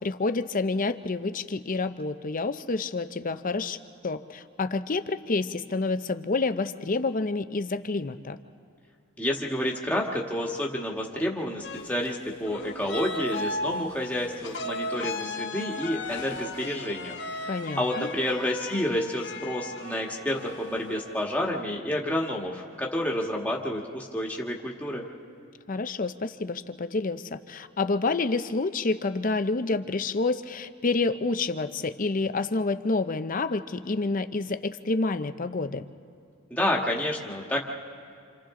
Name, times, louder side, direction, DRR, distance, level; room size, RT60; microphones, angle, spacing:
voice 1, 0.0-3.8 4.0-8.4 17.5-18.1 25.7-35.9, left 3 dB, 35° left, 10 dB, 0.6 m, -28 dB
voice 2, 9.2-25.0 36.5-37.6, left 1 dB, 5° left, -2 dB, 1.5 m, -29 dB
sound 1, 11.6-21.2, left 2 dB, 55° left, 1.1 m, -36 dB
28.0 x 27.5 x 3.8 m, 2.3 s
head